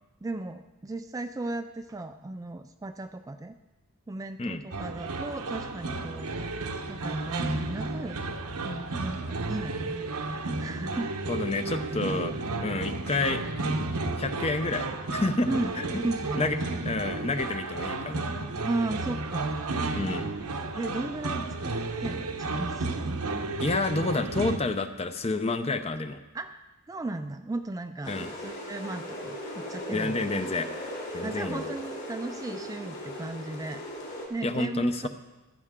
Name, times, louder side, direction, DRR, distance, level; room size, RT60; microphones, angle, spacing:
voice 1, 0.2-3.5 4.1-6.3 6.9-8.2 8.6-11.1 15.5-16.7 18.6-19.6 20.1-20.2 20.7-23.0 26.3-26.6 26.9-30.2 31.2-33.8 34.3-35.1, right 2 dB, 15° right, 8 dB, 0.3 m, -36 dB
sound 1, 4.7-24.6, right 3 dB, 90° right, 1.0 m, -32 dB
voice 2, 11.3-12.3 12.6-13.4 14.2-15.5 15.8-16.0 16.4-16.6 16.9-18.2 20.0-20.3 23.6-26.2 28.1-28.3 29.9-30.7 31.1-31.6 34.4-35.1, left 2 dB, 25° left, 9 dB, 0.6 m, -29 dB
sound 2, 28.0-34.3, equal, 50° left, 3.6 m, -38 dB
15.5 x 12.0 x 3.7 m, 1.1 s
head